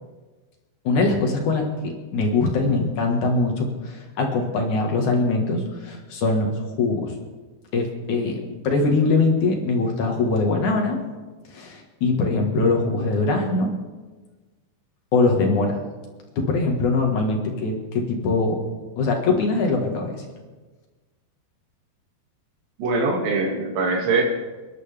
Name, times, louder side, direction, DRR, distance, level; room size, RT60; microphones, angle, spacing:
voice 1, 0.8-7.1 7.7-11.0 11.5-13.7 15.1-15.8 16.4-18.6 19.0-20.2, left 3 dB, 55° left, 1 dB, 2.6 m, -22 dB
voice 2, 22.8-24.2, right 3 dB, 85° right, 1 dB, 4.4 m, -22 dB
29.0 x 11.0 x 3.5 m, 1.3 s
omnidirectional pair, 4.7 m